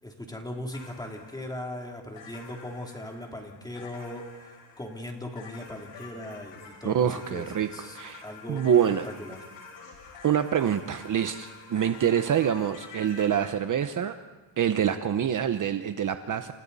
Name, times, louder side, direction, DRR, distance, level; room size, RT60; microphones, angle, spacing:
voice 1, 0.0-8.7 9.0-9.4, left 1 dB, 10° left, 1 dB, 3.1 m, -39 dB
sound 1, 0.7-13.5, left 5 dB, 75° left, 7.6 m, -48 dB
voice 2, 6.8-8.2 8.5-9.1 10.2-14.2 14.6-16.5, right 9 dB, 40° right, 9 dB, 0.9 m, -26 dB
29.5 x 29.5 x 4.1 m, 1.2 s
cardioid pair, 155°, 46 cm